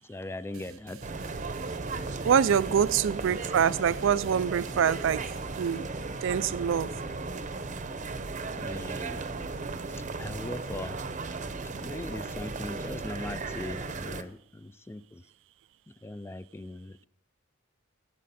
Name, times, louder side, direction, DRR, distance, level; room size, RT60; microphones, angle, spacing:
voice 1, 0.0-1.0 8.6-9.4 9.9-11.0 11.8-15.3 15.9-17.0, left 2 dB, 10° left, 0.3 m, -40 dB
sound 1, 0.5-5.8, right 6 dB, 85° right, 1.0 m, -49 dB
sound 2, 1.0-14.2, right 3 dB, 35° right, 0.7 m, -36 dB
voice 2, 2.2-5.3 5.6-5.9 6.2-6.9, right 8 dB, 65° right, 0.4 m, -25 dB
Wind instrument woodwind instrument, 3.2-7.8, left 7 dB, 40° left, 0.9 m, -53 dB
16.5 x 7.5 x 4.2 m
head